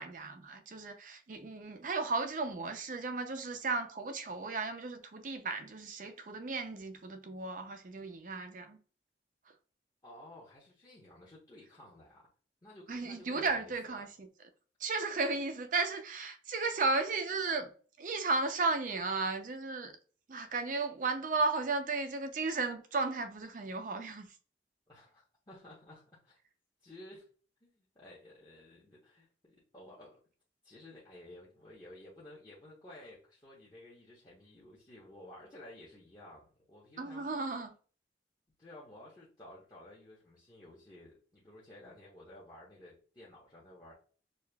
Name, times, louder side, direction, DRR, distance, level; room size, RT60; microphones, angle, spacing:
voice 1, 0.0-8.8 12.9-14.3 14.8-17.7 18.0-20.0 20.3-24.3 37.0-37.7, right 3 dB, 45° right, 0.5 m, -34 dB
voice 2, 10.0-12.3 12.6-14.0 24.9-26.4 26.8-27.3 27.6-30.2 30.6-37.3 38.6-43.9, left 1 dB, 25° left, 0.9 m, -54 dB
6.4 x 2.4 x 2.2 m
head